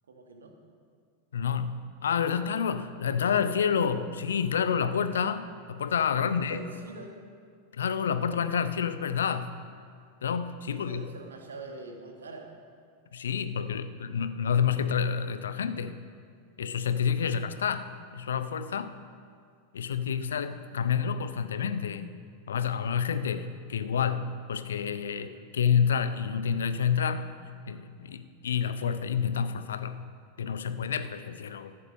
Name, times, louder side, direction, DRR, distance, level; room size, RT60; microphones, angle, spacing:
voice 1, 0.1-0.5 5.1-5.2 6.3-7.2 10.6-12.5, right 3 dB, 70° right, 2 dB, 1.7 m, -44 dB
voice 2, 1.3-6.6 7.7-9.5 10.2-11.0 13.1-16.0 16.6-18.9 19.7-22.1 22.5-27.3 27.7-30.0 30.4-31.7, left 7 dB, 65° left, 12 dB, 0.6 m, -29 dB
13.5 x 8.5 x 6.3 m, 2.2 s
figure-of-eight pair, 90°, 0 cm